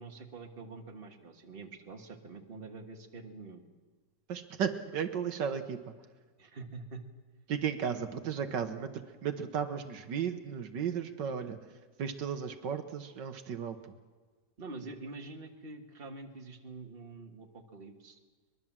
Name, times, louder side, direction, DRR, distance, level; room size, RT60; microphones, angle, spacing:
voice 1, 0.0-3.7 6.4-7.0 14.6-18.2, right 3 dB, 30° right, 3 dB, 1.8 m, -46 dB
voice 2, 4.3-5.9 7.5-11.7 12.0-13.9, right 7 dB, 80° right, 8 dB, 1.8 m, -35 dB
23.5 x 21.5 x 7.4 m, 1.4 s
omnidirectional pair, 1.9 m